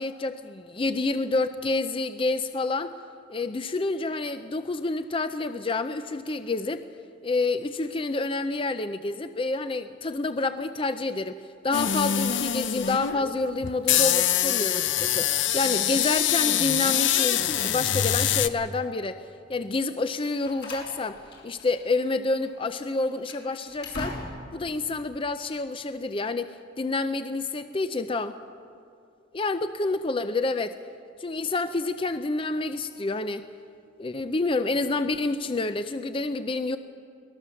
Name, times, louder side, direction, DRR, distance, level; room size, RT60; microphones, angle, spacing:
voice 1, 0.0-2.9 3.3-6.8 7.2-11.4 11.6-19.2 19.5-21.2 21.4-24.2 24.5-28.4 29.3-30.8 31.2-33.4 34.0-36.8, left 3 dB, 30° left, 10 dB, 0.5 m, -28 dB
sound 1, 11.7-18.5, left 10 dB, 85° left, 0.7 m, -24 dB
Slam, 20.0-22.1 22.3-22.5 23.0-24.6, left 1 dB, 65° left, 5.7 m, -40 dB
24.0 x 18.5 x 7.0 m, 2.4 s
head